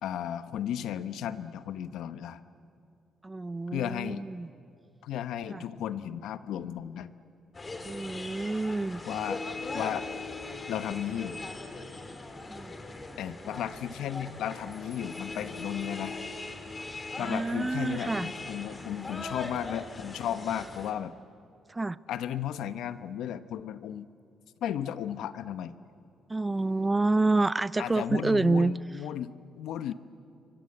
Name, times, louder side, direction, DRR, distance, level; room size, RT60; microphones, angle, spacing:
voice 1, 0.0-2.4 3.7-4.2 5.0-7.1 9.1-9.4 9.7-10.1 10.7-11.4 13.2-16.1 17.2-21.1 22.1-24.1 24.6-25.7 27.8-29.9, left 10 dB, 80° left, 12 dB, 1.0 m, -34 dB
voice 2, 3.2-4.5 5.5-5.6 7.8-9.0 12.5-12.8 17.2-18.3 21.7-22.0 26.3-28.7, right 2 dB, 20° right, 19 dB, 0.6 m, -28 dB
sound 1, 7.5-20.9, left 3 dB, 25° left, 3.3 m, -40 dB
28.0 x 24.0 x 7.9 m, 2.5 s
cardioid pair, 90°, 0 cm